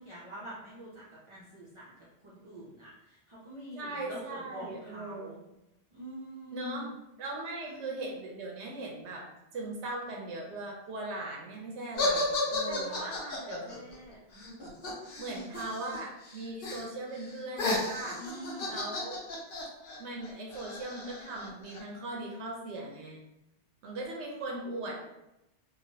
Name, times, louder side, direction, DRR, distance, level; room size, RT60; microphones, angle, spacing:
voice 1, 0.0-2.0 2.2-5.4 5.9-6.9 7.7-7.9 12.7-14.2 18.2-18.7, equal, 35° right, -8 dB, 0.5 m, -45 dB
voice 2, 3.8-5.3 6.5-6.9 7.2-9.3 9.5-13.0 13.5-13.8 15.2-18.2 18.7-19.2 20.0-23.2 23.8-25.0, right 2 dB, 85° right, -1 dB, 0.9 m, -39 dB
sound 1, 12.0-16.0 16.2-16.8 17.1-21.8, left 2 dB, 55° left, 0.9 m, -34 dB
3.0 x 2.3 x 2.7 m, 0.88 s
omnidirectional pair, 1.1 m